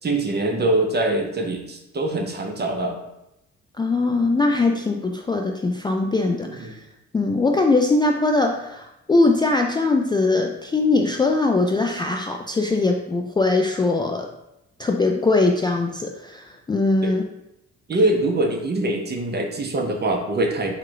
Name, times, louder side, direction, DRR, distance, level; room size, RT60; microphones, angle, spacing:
voice 1, 0.0-3.0 6.5-6.7 17.0-17.1 17.9-20.8, right 2 dB, 35° right, 3 dB, 0.8 m, -23 dB
voice 2, 3.8-6.8 7.1-14.3 14.8-17.2, left 3 dB, 15° left, 2 dB, 0.3 m, -21 dB
4.6 x 2.4 x 4.7 m, 0.87 s
cardioid pair, 90°, 30 cm